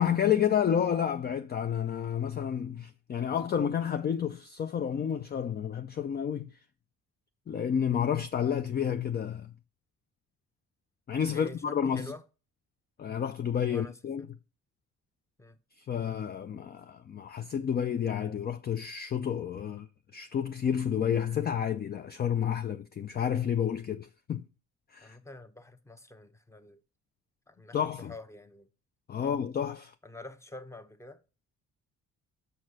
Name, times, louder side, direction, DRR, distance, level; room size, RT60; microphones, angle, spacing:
voice 1, 0.0-6.5 7.5-9.5 11.1-12.1 13.0-14.3 15.9-19.9 20.1-24.4 24.9-25.2 27.7-28.1 29.1-29.9, left 8 dB, 35° left, 0.4 m, -30 dB
voice 2, 11.3-12.2 13.7-14.3 15.4-15.6 25.0-26.8 27.5-28.7 29.2-29.4 30.0-31.2, left 2 dB, 10° left, 0.8 m, -47 dB
6.4 x 4.3 x 6.4 m
cardioid pair, 90°, 30 cm